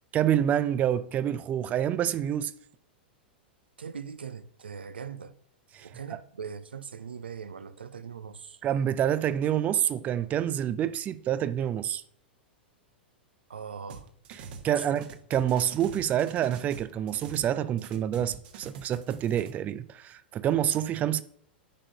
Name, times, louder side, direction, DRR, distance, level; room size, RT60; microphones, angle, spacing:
voice 1, 0.1-2.5 5.7-6.2 8.6-12.0 14.4-21.2, right 10 dB, 25° right, 0.4 m, -27 dB
voice 2, 3.8-5.3 5.8-8.6 13.5-14.1 14.8-14.9, right 6 dB, 80° right, 0.6 m, -40 dB
sound 1, 13.9-14.7 14.9-17.5 17.8-19.5, right 6 dB, 55° right, 1.3 m, -44 dB
10.5 x 3.8 x 5.3 m
figure-of-eight pair, 100°, 6 cm